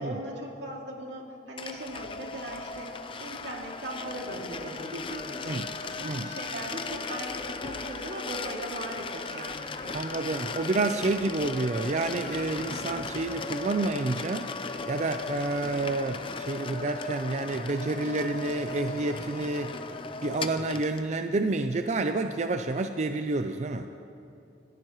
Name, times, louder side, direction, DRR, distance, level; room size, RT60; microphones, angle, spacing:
voice 1, 0.0-5.6 5.8-10.4, right 1 dB, 85° right, -1 dB, 2.6 m, -39 dB
sound 1, 1.6-21.1, left 4 dB, 30° left, 0.6 m, -37 dB
voice 2, 9.9-14.5 14.9-19.8 20.2-23.9, right 2 dB, 40° right, 7 dB, 0.5 m, -29 dB
27.5 x 15.0 x 3.1 m, 2.7 s
head